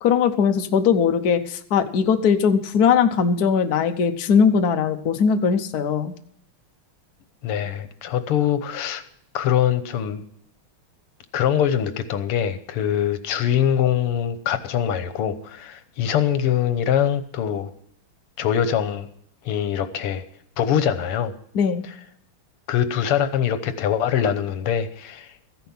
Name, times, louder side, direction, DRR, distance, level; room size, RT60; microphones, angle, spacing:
voice 1, 0.0-6.1 21.5-21.8, left 6 dB, 55° left, 7 dB, 1.3 m, -20 dB
voice 2, 7.4-9.0 9.3-10.2 11.3-17.7 18.4-19.1 19.5-20.2 20.6-21.3 22.7-25.3, left 9 dB, 85° left, 11 dB, 1.9 m, -23 dB
14.0 x 10.5 x 5.6 m, 0.65 s
omnidirectional pair, 2.4 m